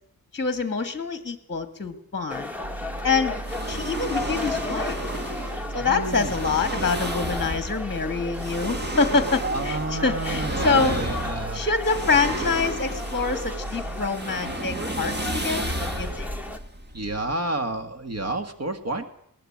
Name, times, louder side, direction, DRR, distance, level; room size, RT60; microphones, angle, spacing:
voice 1, 0.3-2.5 3.0-3.4 3.7-5.0 5.7-11.1 11.5-16.3, left 4 dB, 30° left, 10 dB, 1.8 m, -26 dB
sound 1, 2.3-16.6, left 2 dB, 5° right, 2.0 m, -35 dB
sound 2, 2.6-14.1, right 1 dB, 70° right, 2.8 m, -37 dB
sound 3, 3.4-17.3, right 1 dB, 30° right, 2.0 m, -33 dB
voice 2, 5.7-6.3 9.4-11.6 16.9-19.0, right 2 dB, 45° right, 8 dB, 1.9 m, -30 dB
20.5 x 19.5 x 8.7 m, 0.72 s
wide cardioid pair, 135°, 35 cm